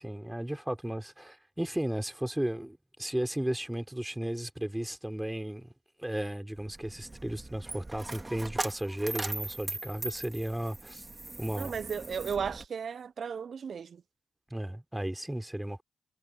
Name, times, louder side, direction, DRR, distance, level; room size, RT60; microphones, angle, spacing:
voice 1, 0.0-5.7 6.0-11.1 11.4-11.7 14.5-15.8, right 1 dB, 10° right, 4.0 m, -34 dB
Coin (dropping), 6.5-12.6, right 2 dB, 25° right, 4.3 m, -40 dB
voice 2, 11.6-14.0, right 6 dB, 60° right, 1.0 m, -35 dB
hypercardioid pair, 40°, 0 cm